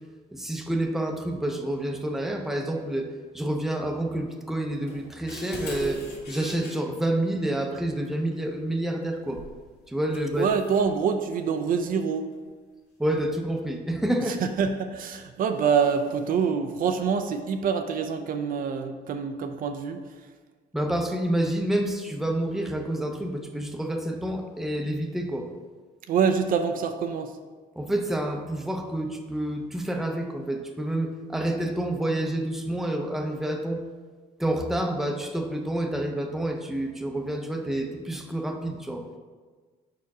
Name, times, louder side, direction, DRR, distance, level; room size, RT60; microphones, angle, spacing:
voice 1, 0.3-3.1 3.3-9.4 9.9-10.5 13.0-14.3 20.7-25.5 27.8-33.8 34.4-39.1, right 1 dB, ahead, 3 dB, 0.6 m, -28 dB
sound 1, 4.9-6.7 9.4-9.6 10.1-10.9, left 2 dB, 80° left, 1.9 m, -38 dB
voice 2, 10.4-12.3 14.3-20.0 26.1-27.4, right 6 dB, 55° right, 7 dB, 0.5 m, -26 dB
5.1 x 4.6 x 4.8 m, 1.4 s
cardioid pair, 110°, 17 cm